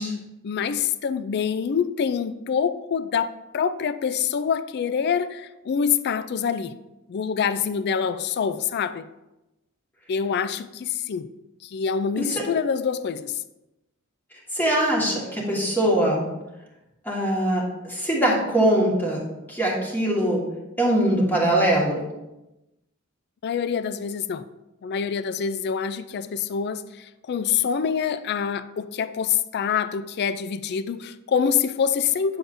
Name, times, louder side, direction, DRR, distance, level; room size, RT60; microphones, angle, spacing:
voice 1, 0.0-6.7 7.1-9.1 10.1-11.3 11.6-13.3 23.4-24.4 24.8-32.4, left 7 dB, 50° left, 14 dB, 0.3 m, -26 dB
voice 2, 14.5-16.3 17.0-19.2 19.5-20.5 20.8-22.1, right 1 dB, 10° left, -4 dB, 1.6 m, -22 dB
8.7 x 6.9 x 2.6 m, 0.97 s
head